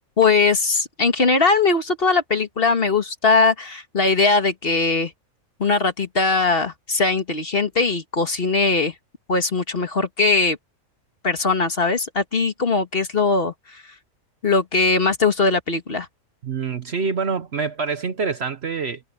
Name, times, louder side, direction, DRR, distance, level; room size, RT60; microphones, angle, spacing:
voice 1, 0.2-5.1 5.6-8.9 9.3-10.6 11.2-13.5 14.4-16.1, left 4 dB, 40° left, 1.9 m, -20 dB
voice 2, 16.4-19.0, right 5 dB, 50° right, 1.1 m, -26 dB
omnidirectional pair, 1.5 m